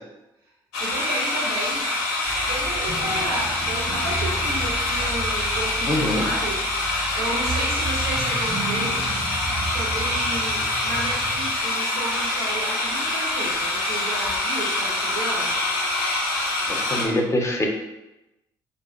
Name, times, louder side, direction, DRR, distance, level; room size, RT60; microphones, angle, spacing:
sound 1, 0.7-17.1, left 2 dB, 80° left, 0.5 m, -25 dB
voice 1, 0.8-1.8 2.4-6.6 7.1-9.0 9.6-15.8, right 2 dB, 85° right, -2 dB, 0.5 m, -32 dB
sound 2, 2.3-11.6, right 2 dB, 30° right, 0.4 m, -33 dB
voice 2, 5.9-6.3 16.7-17.7, left 1 dB, 25° left, 1 dB, 0.5 m, -24 dB
2.4 x 2.2 x 2.4 m, 0.96 s
hypercardioid pair, 50°, 12 cm